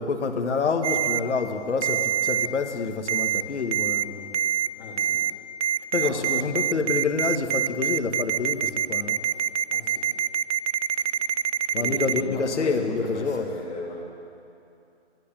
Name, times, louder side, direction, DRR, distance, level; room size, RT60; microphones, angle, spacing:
voice 1, 0.0-4.3 5.9-9.2 11.7-13.4, left 4 dB, 85° left, 5 dB, 1.7 m, -27 dB
Ringtone, 0.8-1.2 1.8-2.5 3.1-3.4 3.7-4.0 4.3-4.7 5.0-5.3 5.6-12.2, right 9 dB, 85° right, 0.6 m, -24 dB
voice 2, 4.8-5.4 6.0-6.5 9.0-9.2 9.7-10.2 11.1-11.3 11.6-14.0, left 2 dB, 40° left, -5 dB, 2.8 m, -37 dB
12.0 x 11.5 x 8.8 m, 2.6 s
hypercardioid pair, 170°, 34 cm